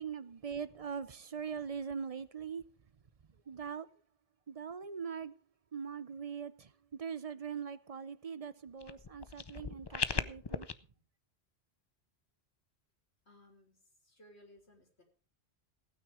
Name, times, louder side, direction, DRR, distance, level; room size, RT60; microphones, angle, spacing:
voice 1, 0.0-2.6 3.5-3.9 4.5-5.3 5.7-10.7, right 6 dB, 40° right, 0.6 m, -41 dB
sound 1, 8.8-10.7, left 5 dB, 30° left, 0.5 m, -37 dB
voice 2, 13.3-13.8 14.0-15.0, equal, 80° left, 3.5 m, -61 dB
16.0 x 9.2 x 4.9 m
omnidirectional pair, 1.1 m